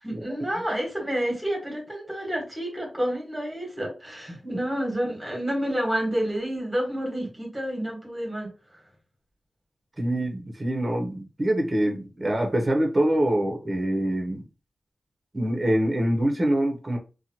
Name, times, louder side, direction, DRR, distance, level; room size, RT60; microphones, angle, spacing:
voice 1, 0.0-8.5, equal, 10° right, 1.2 m, -29 dB
voice 2, 10.0-14.4 15.3-17.0, right 1 dB, 30° right, 0.7 m, -25 dB
2.8 x 2.1 x 2.8 m
wide cardioid pair, 100°, 0 cm